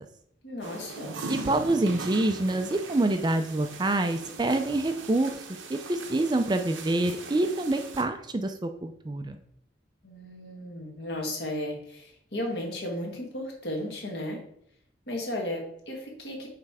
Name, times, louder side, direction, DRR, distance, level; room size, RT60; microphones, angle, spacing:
voice 1, 0.4-1.1 10.0-14.4 15.1-16.5, left 1 dB, 60° left, 0 dB, 1.8 m, -34 dB
sound 1, 0.6-8.0, right 3 dB, 90° right, 0.9 m, -40 dB
voice 2, 1.3-5.3 5.7-9.4, right 2 dB, 20° right, 8 dB, 0.4 m, -26 dB
7.4 x 3.3 x 4.8 m, 0.69 s
head